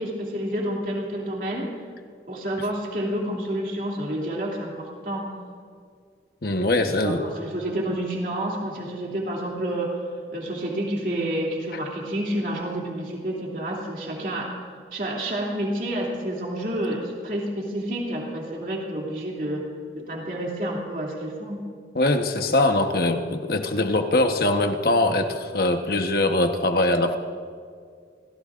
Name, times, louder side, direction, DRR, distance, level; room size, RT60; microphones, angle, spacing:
voice 1, 0.0-1.7 2.3-5.3 6.8-10.0 10.3-14.5 14.9-19.6 19.9-21.6, right 1 dB, 50° right, -2 dB, 2.7 m, -29 dB
voice 2, 6.4-7.2 21.9-27.2, left 2 dB, 55° left, 6 dB, 1.1 m, -22 dB
29.0 x 16.0 x 2.5 m, 2.1 s
head